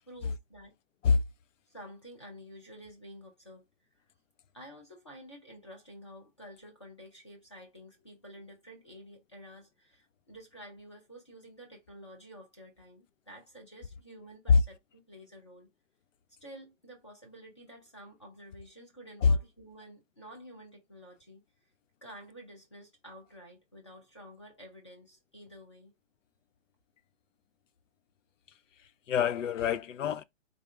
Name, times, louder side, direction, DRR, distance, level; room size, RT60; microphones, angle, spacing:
voice 1, 0.1-0.8 1.7-3.6 4.5-15.7 16.4-21.4 22.0-25.9, equal, 25° left, 0.6 m, -50 dB
voice 2, 29.1-30.2, left 5 dB, 75° left, 0.6 m, -24 dB
3.7 x 2.6 x 3.1 m
hypercardioid pair, 180°, 39 cm